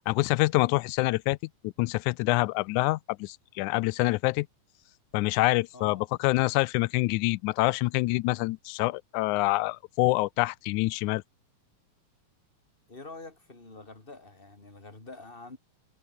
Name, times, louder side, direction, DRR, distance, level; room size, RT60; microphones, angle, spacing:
voice 1, 0.0-1.4 1.6-4.5 5.1-11.2, left 21 dB, 85° left, 2.0 m, -26 dB
voice 2, 5.7-6.1 12.9-15.6, left 3 dB, 15° left, 3.6 m, -46 dB
omnidirectional pair, 3.4 m